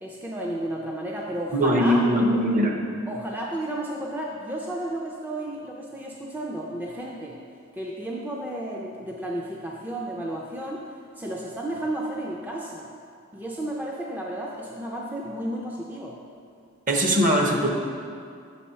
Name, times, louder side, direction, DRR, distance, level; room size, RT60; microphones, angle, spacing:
voice 1, 0.0-2.0 3.1-7.4 7.7-10.8 11.2-12.9 13.3-16.2, right 1 dB, 10° right, -2 dB, 0.4 m, -32 dB
voice 2, 1.5-2.7 16.9-17.7, equal, 40° right, 1 dB, 0.8 m, -21 dB
6.7 x 4.2 x 5.6 m, 2.3 s
head